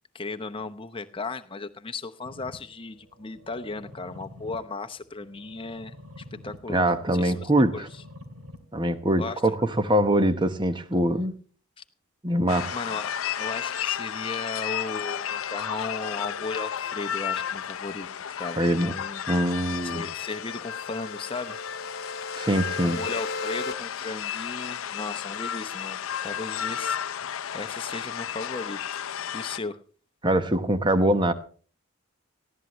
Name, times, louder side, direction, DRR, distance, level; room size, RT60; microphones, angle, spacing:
voice 1, 0.1-5.9 6.4-7.9 9.2-9.6 12.7-18.1 18.4-19.2 19.8-21.6 22.8-28.8 29.3-29.8, left 3 dB, 25° left, 0.8 m, -36 dB
sound 1, 2.3-10.2, left 1 dB, 80° right, 2.8 m, -49 dB
voice 2, 6.7-7.9 8.7-11.3 12.2-12.8 18.6-18.9 19.3-20.0 22.4-23.0 30.2-31.3, right 1 dB, 20° right, 1.0 m, -23 dB
sound 2, 12.5-29.6, left 9 dB, 70° left, 0.6 m, -33 dB
sound 3, 18.8-23.7, left 3 dB, 45° left, 1.4 m, -38 dB
19.0 x 15.0 x 3.1 m
head